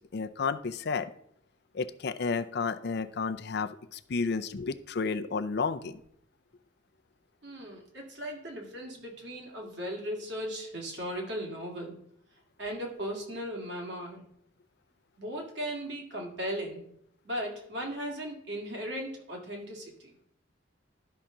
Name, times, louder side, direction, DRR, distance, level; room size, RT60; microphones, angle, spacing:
voice 1, 0.1-1.1 1.7-6.0, left 5 dB, 55° left, 10 dB, 0.5 m, -32 dB
voice 2, 7.4-12.0 12.6-14.3 15.2-16.9 17.2-20.1, equal, 60° right, 0 dB, 2.1 m, -37 dB
12.0 x 5.7 x 3.7 m, 0.71 s
head